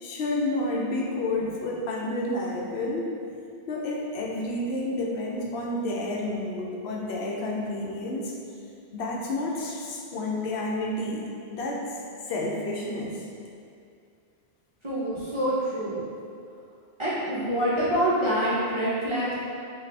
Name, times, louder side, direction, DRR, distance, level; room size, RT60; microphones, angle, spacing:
voice 1, 0.0-3.1 3.7-8.3 8.9-11.8 12.3-13.2, left 2 dB, 80° left, -2 dB, 0.8 m, -30 dB
voice 2, 14.8-16.0 17.0-19.3, equal, 35° right, -10 dB, 0.5 m, -26 dB
4.0 x 2.3 x 3.2 m, 2.4 s
omnidirectional pair, 1.1 m